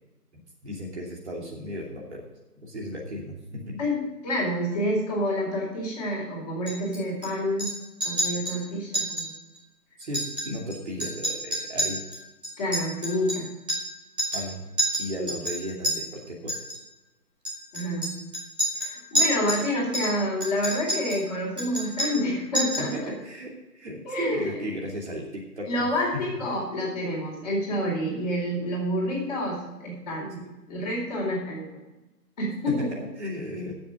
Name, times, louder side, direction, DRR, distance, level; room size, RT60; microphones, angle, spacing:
voice 1, 0.6-2.2 2.6-3.8 10.0-12.0 14.3-14.6 15.0-16.6 22.8-25.9 26.3-26.4 30.4-30.5 32.9-33.7, equal, 45° right, -2 dB, 2.8 m, -35 dB
voice 2, 3.8-7.7 8.0-9.3 12.6-13.5 17.7-18.1 18.8-23.1 24.0-24.6 25.7-30.4 30.7-31.7 32.4-32.9, left 1 dB, 25° left, -4 dB, 4.4 m, -28 dB
Chink clink, 6.7-7.3 7.6-7.7 8.0-8.6 8.9-9.3 9.5-9.6 10.0-10.7 11.0-13.9 14.2-14.5 14.8-15.9 16.5-16.8 17.4-19.6 19.9-21.2 21.6-22.3 22.5-22.9, equal, 5° right, 1.1 m, -29 dB
14.5 x 7.2 x 5.0 m, 1.0 s
hypercardioid pair, 170°, 47 cm